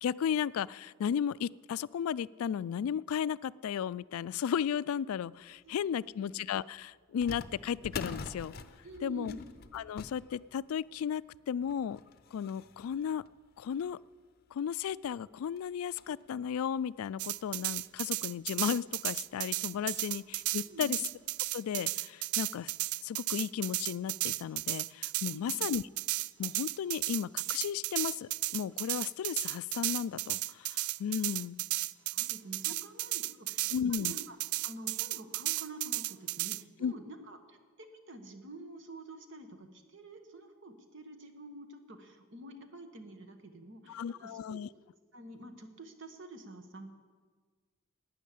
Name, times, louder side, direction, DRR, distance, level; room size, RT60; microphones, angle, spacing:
voice 1, 0.0-8.5 9.0-9.3 9.7-12.0 12.3-13.2 13.6-14.0 14.5-21.0 21.5-22.7 23.0-25.8 26.4-31.6 33.7-34.1 36.8-36.9 43.9-44.7, left 8 dB, 80° left, 20 dB, 0.3 m, -34 dB
voice 2, 5.6-6.1 6.4-6.5 8.8-9.5 20.7-21.0 25.3-25.7 32.1-34.4 34.6-44.6 45.1-46.9, right 1 dB, 55° right, 7 dB, 1.3 m, -48 dB
sound 1, 5.8-5.9 7.2-14.1 14.7-14.8 15.0-15.2 15.6-16.3 16.8-16.9 17.7-17.8 18.2-18.3 19.7-20.0 20.4-20.5 21.1-21.3, left 4 dB, 45° left, 0.6 m, -47 dB
sound 2, 17.2-36.6, right 17 dB, 80° right, 0.3 m, -34 dB
11.5 x 9.4 x 8.3 m, 1.5 s
head